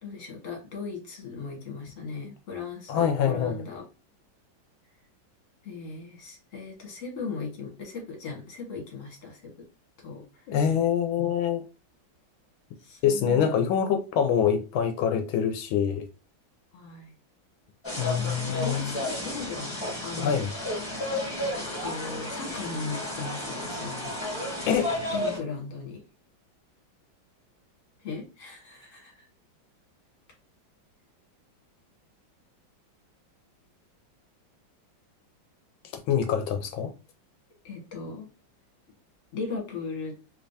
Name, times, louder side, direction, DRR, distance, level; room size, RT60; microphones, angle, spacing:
voice 1, 0.0-3.8 5.6-9.5 10.0-10.2 12.8-13.5 16.7-17.1 18.1-20.4 21.8-24.1 25.1-26.0 28.0-29.3 37.6-38.3 39.3-40.1, left 4 dB, 45° left, 1.5 m, -38 dB
voice 2, 2.9-3.6 10.5-11.6 13.0-16.1 18.0-19.0 20.2-20.5 24.7-24.9 36.1-36.9, left 8 dB, 85° left, 1.4 m, -25 dB
sound 1, 17.8-25.4, left 1 dB, 15° left, 1.3 m, -32 dB
3.5 x 3.3 x 2.6 m
omnidirectional pair, 2.2 m